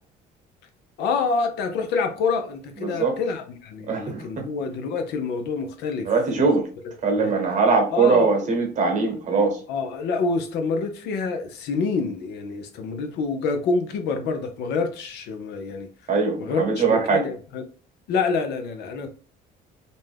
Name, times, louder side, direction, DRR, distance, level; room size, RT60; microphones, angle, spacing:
voice 1, 1.0-6.1 6.4-6.5 7.2-7.3 7.9-8.3 9.7-15.9 16.4-17.6 18.1-19.1, left 4 dB, 80° left, 0.6 m, -27 dB
voice 2, 2.8-3.1 3.9-4.5 6.0-6.7 7.0-9.6 16.1-17.3, right 4 dB, 45° right, 1.0 m, -21 dB
2.6 x 2.2 x 3.2 m
cardioid pair, 110°, 17 cm